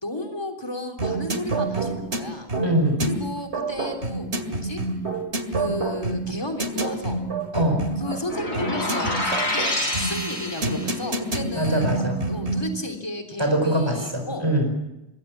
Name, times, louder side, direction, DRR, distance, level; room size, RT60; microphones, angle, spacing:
voice 1, 0.0-2.5 3.0-4.8 5.5-7.2 8.0-11.9 12.3-14.5, left 2 dB, 20° left, 3 dB, 3.4 m, -33 dB
Candle Faces, 1.0-12.8, right 2 dB, 90° right, 2.6 m, -28 dB
voice 2, 2.6-3.0 7.5-7.8 11.6-12.2 13.4-14.7, right 1 dB, 25° right, 4 dB, 4.7 m, -23 dB
sound 1, 8.3-11.1, left 1 dB, 80° left, 4.9 m, -27 dB
26.0 x 22.0 x 6.0 m, 0.94 s
omnidirectional pair, 1.1 m